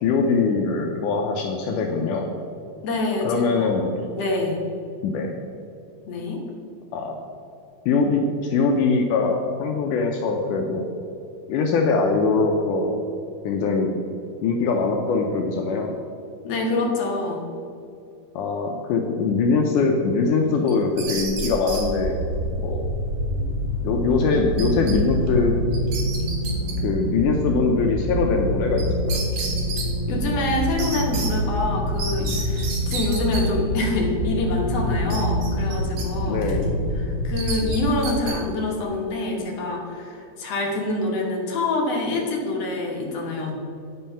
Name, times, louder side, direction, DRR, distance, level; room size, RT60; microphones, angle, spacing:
voice 1, 0.0-2.3 3.2-3.9 5.0-5.3 6.9-7.2 7.9-10.9 11.5-13.0 13.4-14.0 14.4-15.9 18.4-22.2 22.6-22.9 23.8-25.6 26.8-29.2 36.3-36.7, left 4 dB, 75° left, 2 dB, 2.0 m, -22 dB
voice 2, 2.8-3.8 4.2-4.6 6.1-6.4 16.4-17.4 30.1-36.5 37.0-43.5, left 2 dB, 60° left, 0 dB, 1.9 m, -26 dB
sound 1, 20.7-21.8 24.6-24.9 25.3-25.4 25.7-26.7 28.8-28.9 29.1-29.9 30.8-31.3 32.0-33.4 35.1-36.1 36.4-36.6 37.4-38.3, right 4 dB, 55° right, 2.4 m, -32 dB
sound 2, 21.0-38.3, equal, 10° right, 1.5 m, -26 dB
9.4 x 5.4 x 5.6 m, 2.6 s
omnidirectional pair, 4.1 m